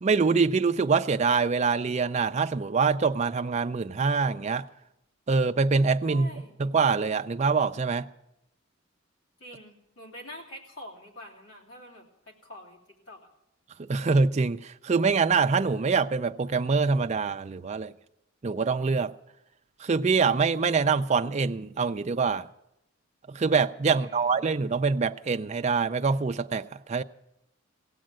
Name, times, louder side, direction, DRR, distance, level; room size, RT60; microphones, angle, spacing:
voice 1, 0.0-4.7 5.3-6.3 6.6-8.1 13.8-17.9 18.4-19.1 19.8-22.5 23.3-27.0, right 4 dB, 35° right, 0.4 m, -25 dB
voice 2, 6.0-6.6 9.4-12.8 13.1-13.3 23.9-24.5, equal, 85° left, 3.1 m, -46 dB
17.0 x 7.6 x 9.0 m
head